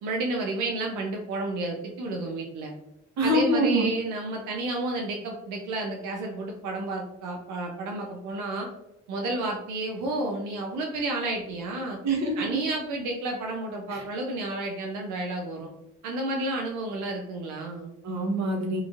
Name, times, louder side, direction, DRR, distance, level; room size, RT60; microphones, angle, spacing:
voice 1, 0.0-2.7 3.2-8.7 9.1-12.0 12.4-15.7 16.0-17.9, right 2 dB, 90° right, 1 dB, 0.5 m, -31 dB
voice 2, 3.2-3.9 12.0-12.3 13.9-14.0 18.0-18.8, right 1 dB, 60° right, 0 dB, 0.9 m, -25 dB
2.9 x 2.6 x 2.4 m, 0.85 s
cardioid pair, 90°, 30 cm